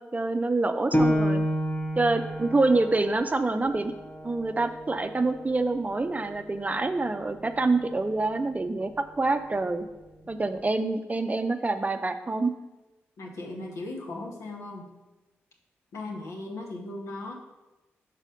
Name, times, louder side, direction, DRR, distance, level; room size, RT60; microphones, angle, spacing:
voice 1, 0.0-1.4 2.0-3.9 4.2-8.9 9.2-9.9 10.3-12.5, right 3 dB, 30° right, 9 dB, 0.5 m, -26 dB
Piano, 0.9-6.1 6.6-6.7 7.3-7.8, equal, 25° left, 1.0 m, -30 dB
voice 2, 13.2-14.9 15.9-17.3, left 2 dB, 75° left, 0 dB, 1.1 m, -37 dB
4.9 x 4.1 x 5.5 m, 1.0 s
supercardioid pair, 40°, 5 cm